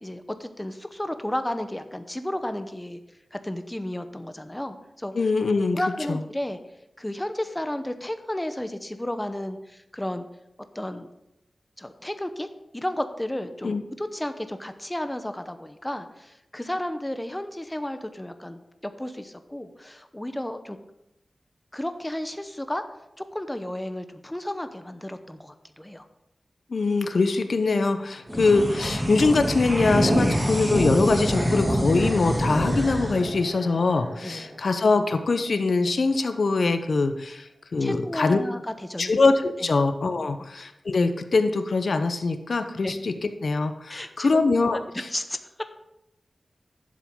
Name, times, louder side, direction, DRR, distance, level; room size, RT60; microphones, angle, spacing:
voice 1, 0.0-3.0 3.3-5.1 5.7-6.6 7.0-10.3 10.7-11.1 11.8-12.5 12.7-20.8 21.7-22.8 23.2-26.0 28.3-28.4 34.2-34.6 37.8-39.1 42.8-42.9 43.9-44.4 45.1-45.4, left 1 dB, 15° left, 9 dB, 0.8 m, -33 dB
voice 2, 5.1-5.8 6.1-6.2 13.6-13.8 26.7-38.4 39.0-43.1 43.4-45.1, left 3 dB, 70° left, 8 dB, 0.7 m, -23 dB
sound 1, 28.3-35.0, equal, 15° right, 2.4 m, -26 dB
11.0 x 7.5 x 3.7 m, 0.87 s
wide cardioid pair, 65°, 0 cm